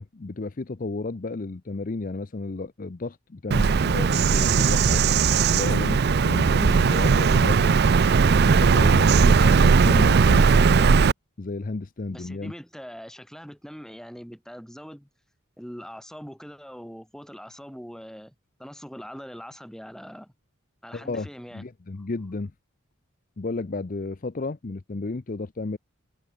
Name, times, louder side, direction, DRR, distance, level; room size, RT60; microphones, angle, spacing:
voice 1, 0.0-5.0 5.5-7.8 8.4-11.1 11.4-12.5 20.9-21.3 21.5-22.5 23.4-25.8, left 3 dB, 40° left, 0.6 m, -32 dB
Bird vocalization bird call bird song, 3.5-11.1, right 5 dB, 50° right, 0.4 m, -18 dB
voice 2, 12.1-15.1 15.6-20.3 20.8-21.6, equal, 5° left, 3.1 m, -42 dB
head